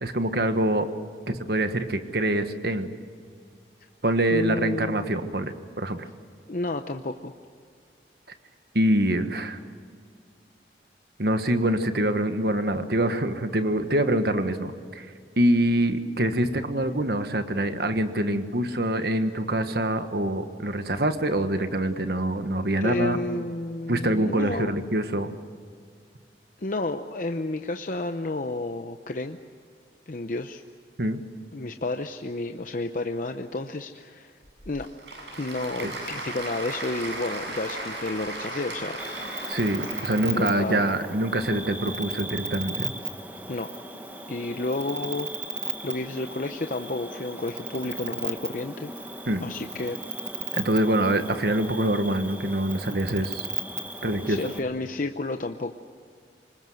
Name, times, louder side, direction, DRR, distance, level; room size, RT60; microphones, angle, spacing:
voice 1, 0.0-0.9 1.3-2.9 4.0-6.1 8.7-9.6 11.2-15.1 15.4-23.2 23.9-25.3 31.0-31.2 35.8-35.9 39.5-42.9 49.3-49.4 50.5-53.5 54.0-54.4, right 1 dB, 60° right, 8 dB, 1.5 m, -25 dB
voice 2, 4.3-5.2 6.5-7.3 22.8-24.7 26.6-29.4 30.1-30.6 31.5-34.3 34.7-34.9 35.4-39.0 40.3-40.9 43.5-43.7 44.3-45.3 45.8-48.9 49.4-50.0 54.3-55.7, left 2 dB, 50° left, 6 dB, 0.8 m, -31 dB
Applause / Crowd, 34.4-40.9, right 2 dB, 80° right, 7.6 m, -36 dB
Cricket, 39.0-54.6, right 2 dB, 10° right, 1.8 m, -36 dB
25.0 x 20.5 x 7.9 m, 2.1 s
head